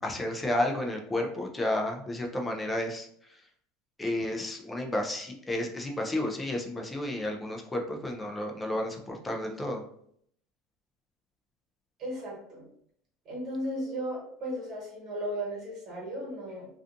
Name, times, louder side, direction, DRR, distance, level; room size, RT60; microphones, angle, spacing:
voice 1, 0.0-3.1 4.0-9.8, left 1 dB, 10° left, 1 dB, 0.3 m, -31 dB
voice 2, 12.0-12.6 13.2-16.7, equal, 35° right, -6 dB, 1.3 m, -35 dB
2.5 x 2.3 x 2.5 m, 0.67 s
cardioid pair, 165°, 0 cm